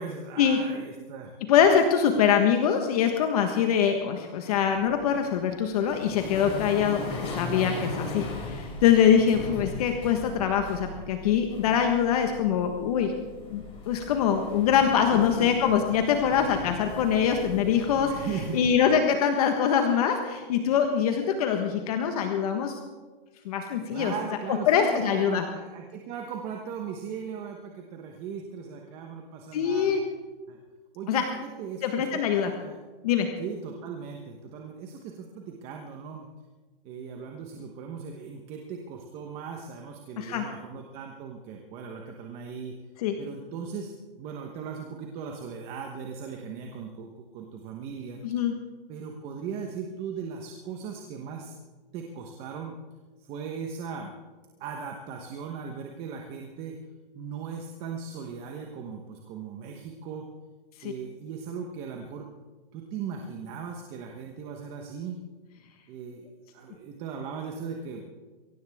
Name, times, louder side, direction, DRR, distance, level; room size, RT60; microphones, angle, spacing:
voice 1, 0.0-1.3 15.1-15.5 18.1-18.6 23.9-29.9 30.5-30.6 30.9-32.8 33.4-36.3 36.8-42.7 43.2-48.2 48.9-51.6 51.9-52.8 53.2-54.2 54.6-56.7 57.1-60.2 60.8-62.3 62.7-65.2 65.9-66.3 66.5-68.1, right 6 dB, 20° right, 2 dB, 1.1 m, -38 dB
voice 2, 1.5-13.2 13.5-18.3 18.5-22.8 23.4-24.1 24.7-25.5 29.5-30.0 31.1-31.2 31.8-32.5 33.0-33.3 40.2-40.5 43.0-43.1 48.2-48.5 60.8-60.9, left 8 dB, 40° left, 5 dB, 1.4 m, -24 dB
sound 1, 4.7-18.7, left 2 dB, 20° left, 3.3 m, -39 dB
23.0 x 17.5 x 3.6 m, 1.3 s
hypercardioid pair, 165°, 30 cm